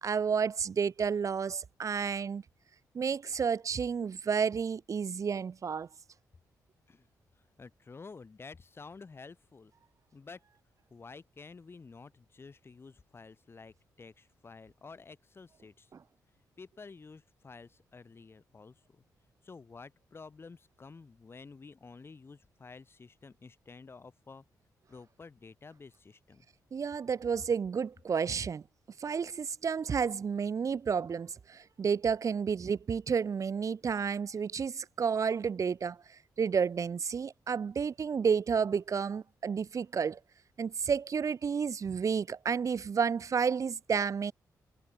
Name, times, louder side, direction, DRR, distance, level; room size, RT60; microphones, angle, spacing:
voice 1, 0.0-2.4 2.9-5.9 26.7-28.6 29.0-36.0 36.4-40.2 40.6-44.3, right 6 dB, 50° right, 3.4 m, -31 dB
voice 2, 7.6-9.7 10.1-10.4 10.9-15.9 16.6-19.0 19.4-24.4 24.9-26.5, left 4 dB, 35° left, 6.0 m, -51 dB
cardioid pair, 95°, 7 cm